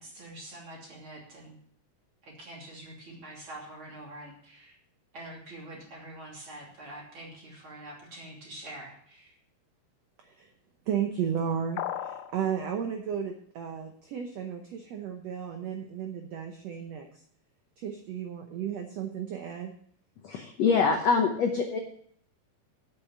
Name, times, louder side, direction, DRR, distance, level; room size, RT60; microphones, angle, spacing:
voice 1, 0.0-1.6 2.2-4.8 5.1-9.4, right 1 dB, 35° right, -2 dB, 3.4 m, -45 dB
voice 2, 10.9-17.1 17.8-19.7, right 8 dB, 70° right, 4 dB, 1.6 m, -34 dB
sound 1, 11.8-12.3, left 12 dB, 90° left, 2.5 m, -34 dB
voice 3, 20.2-21.8, left 5 dB, 70° left, 4 dB, 1.6 m, -25 dB
8.7 x 8.5 x 7.1 m, 0.62 s
omnidirectional pair, 4.2 m